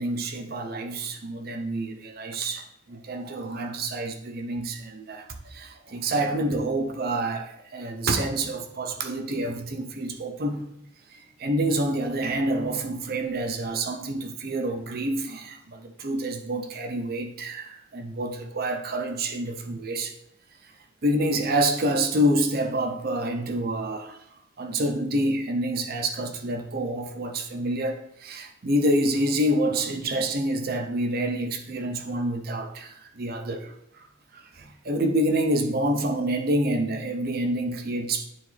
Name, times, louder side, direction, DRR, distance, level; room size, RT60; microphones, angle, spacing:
voice 1, 0.0-5.3 5.5-10.6 11.1-20.1 21.0-24.2 24.6-33.7 34.3-38.3, right 1 dB, 45° right, 0.7 m, -27 dB
9.4 x 3.9 x 3.3 m
head